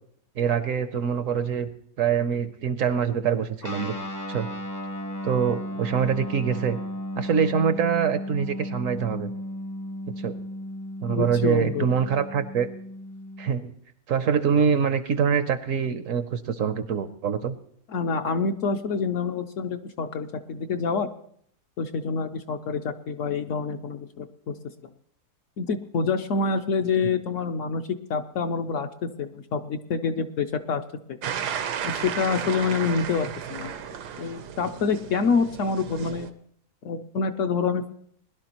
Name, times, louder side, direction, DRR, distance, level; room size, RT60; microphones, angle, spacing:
voice 1, 0.4-1.7 2.0-3.9 4.3-4.5 5.2-6.8 7.2-9.3 10.2-10.3 11.0-12.7 13.4-13.7 14.1-17.6, right 7 dB, 65° right, 11 dB, 0.9 m, -24 dB
Guitar, 3.6-13.5, left 1 dB, 20° left, 0.5 m, -35 dB
voice 2, 11.1-11.9 17.9-21.1 21.8-24.6 25.6-30.8 31.1-31.2 31.8-33.7 34.1-36.3 36.8-37.9, left 5 dB, 65° left, 7 dB, 0.9 m, -27 dB
sound 1, 31.2-36.3, right 8 dB, 80° right, 1.3 m, -34 dB
20.5 x 11.5 x 2.9 m, 0.65 s
omnidirectional pair, 1.7 m